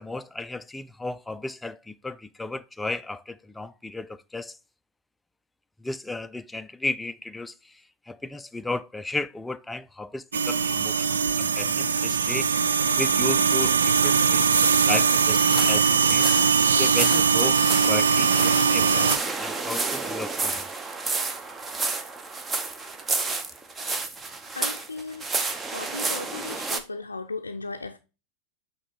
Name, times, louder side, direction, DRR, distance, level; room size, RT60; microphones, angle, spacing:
voice 1, 0.0-4.6 5.8-7.7 8.1-16.3 16.8-20.6, left 2 dB, 5° left, 0.4 m, -34 dB
sound 1, 10.3-19.2, right 6 dB, 70° right, 0.3 m, -21 dB
sound 2, 15.4-26.8, right 3 dB, 15° right, 0.7 m, -30 dB
voice 2, 24.5-25.3 25.7-28.0, left 3 dB, 80° left, 0.5 m, -36 dB
8.5 x 3.1 x 4.5 m
figure-of-eight pair, 90°, 0 cm